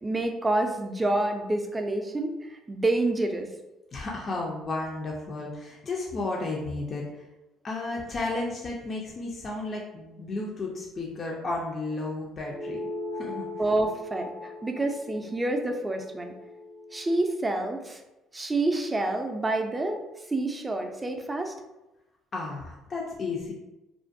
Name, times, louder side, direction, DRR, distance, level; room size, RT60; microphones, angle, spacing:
voice 1, 0.0-3.5 13.6-16.3 16.9-18.0 18.3-20.0 20.3-21.5, right 2 dB, 20° right, 4 dB, 0.4 m, -28 dB
voice 2, 3.9-7.3 7.6-12.8 13.2-13.5 22.3-23.5, left 2 dB, 40° left, -2 dB, 0.4 m, -33 dB
sound 1, 12.5-17.3, left 2 dB, 70° left, 0.8 m, -39 dB
2.4 x 2.2 x 2.5 m, 0.99 s
supercardioid pair, 85°, 0 cm